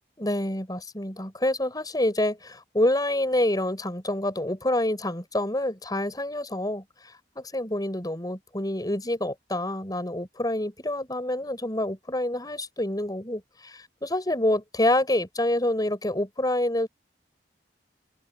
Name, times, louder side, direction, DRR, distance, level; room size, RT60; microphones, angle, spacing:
voice 1, 0.2-6.8 7.4-16.9, left 1 dB, 20° left, 7.1 m, -27 dB
head